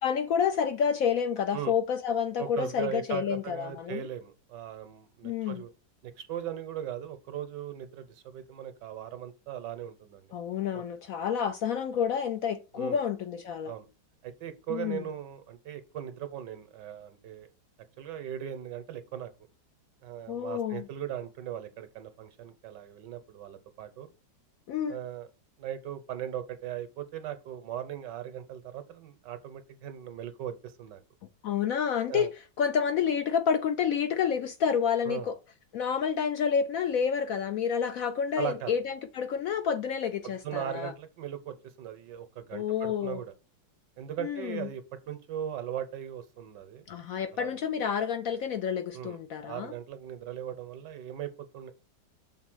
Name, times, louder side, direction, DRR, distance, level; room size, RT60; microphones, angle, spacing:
voice 1, 0.0-4.0 5.2-5.6 10.3-13.7 14.7-15.0 20.3-20.9 24.7-25.0 31.4-32.3 32.6-35.4 35.7-40.9 42.5-43.2 44.2-44.7 46.9-49.7, left 7 dB, 70° left, 0.8 m, -29 dB
voice 2, 2.4-5.7 6.0-10.3 10.7-10.8 12.7-13.0 13.7-13.9 14.2-17.5 18.0-19.3 20.0-24.1 24.9-25.3 25.6-31.0 32.1-32.3 35.0-35.3 38.3-38.8 40.2-43.3 44.0-46.8 47.3-47.6 48.9-49.2 49.4-51.7, right 10 dB, 75° right, 1.4 m, -39 dB
6.4 x 4.0 x 6.1 m
omnidirectional pair, 2.0 m